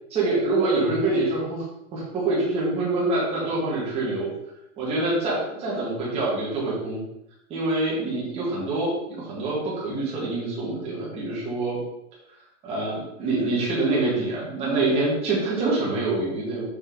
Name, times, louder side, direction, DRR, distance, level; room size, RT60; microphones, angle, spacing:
voice 1, 0.1-1.6 1.9-4.3 4.8-7.0 7.5-11.8 12.6-16.6, right 2 dB, 15° right, -5 dB, 1.8 m, -25 dB
6.7 x 4.5 x 3.8 m, 0.83 s
supercardioid pair, 175°, 39 cm